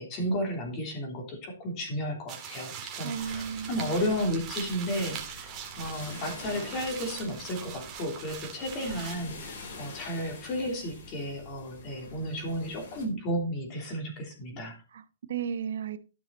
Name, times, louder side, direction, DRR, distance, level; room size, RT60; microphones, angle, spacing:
voice 1, 0.0-5.5 5.8-14.8, equal, 25° left, 2 dB, 3.2 m, -33 dB
sound 1, 2.3-9.1, right 8 dB, 20° right, 1.8 m, -41 dB
voice 2, 3.0-3.8 14.9-16.0, right 7 dB, 65° right, 11 dB, 1.0 m, -34 dB
sound 2, 3.1-13.1, left 3 dB, 50° left, 4.1 m, -46 dB
13.0 x 6.1 x 4.1 m, 0.34 s
hypercardioid pair, 165°, 0 cm